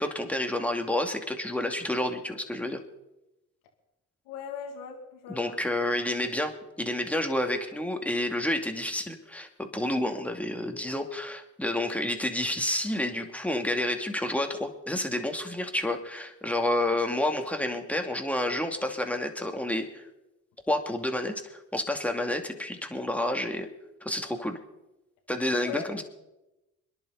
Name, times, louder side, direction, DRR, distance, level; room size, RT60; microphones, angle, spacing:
voice 1, 0.0-2.8 5.3-6.5 6.8-20.1 20.7-23.7 24.0-24.6 25.3-26.0, left 1 dB, 5° left, 4 dB, 2.4 m, -29 dB
voice 2, 4.3-5.6 25.6-25.9, left 7 dB, 75° left, 2 dB, 2.5 m, -38 dB
26.0 x 11.0 x 4.0 m, 0.94 s
hypercardioid pair, 55°, 40 cm